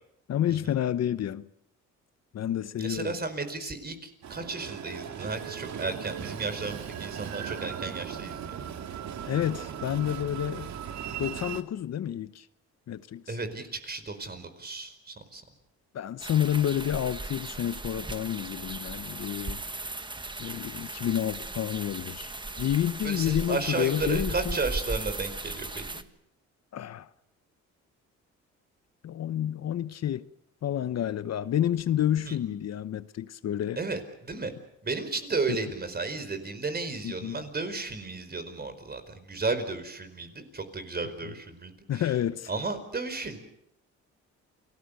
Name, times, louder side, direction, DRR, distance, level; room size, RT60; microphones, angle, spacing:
voice 1, 0.3-1.5 2.3-3.2 9.3-10.7 11.2-12.5 12.9-13.4 15.9-19.6 20.4-22.3 22.6-24.6 26.7-27.1 29.0-30.3 30.6-33.8 35.5-35.6 37.0-37.4 41.2-41.3 41.9-42.5, left 11 dB, 60° left, 0.9 m, -29 dB
voice 2, 2.8-8.4 13.3-15.4 23.0-26.0 32.2-32.4 33.8-34.5 34.8-42.1 42.5-43.4, right 3 dB, 30° right, 4.7 m, -33 dB
Train, 4.2-11.6, right 8 dB, 65° right, 2.0 m, -38 dB
sound 1, 16.2-26.0, right 2 dB, 15° right, 1.5 m, -37 dB
29.0 x 19.5 x 6.8 m
cardioid pair, 90°, 30 cm